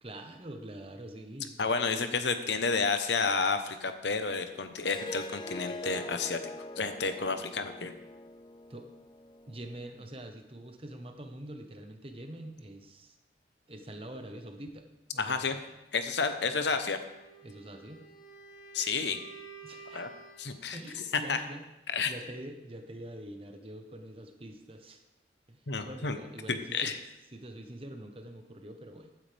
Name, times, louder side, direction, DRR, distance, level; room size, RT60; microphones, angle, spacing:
voice 1, 0.0-1.6 8.7-8.9 9.5-13.1 13.7-15.5 17.4-18.0 19.6-20.1 20.7-21.6 22.0-25.0 25.5-27.0 27.3-29.1, right 1 dB, 30° right, 5 dB, 1.0 m, -45 dB
voice 2, 1.6-7.9 15.2-15.6 15.9-17.0 18.7-19.2 19.9-20.1 20.4-20.8 21.1-21.4 21.9-22.1 25.7-26.2 26.5-27.0, left 4 dB, 75° left, 8 dB, 1.0 m, -30 dB
Harp, 4.8-10.0, left 1 dB, 25° left, 0.3 m, -43 dB
Wind instrument woodwind instrument, 17.1-20.6, right 3 dB, 45° left, 2.5 m, -50 dB
15.0 x 9.6 x 3.5 m, 0.95 s
head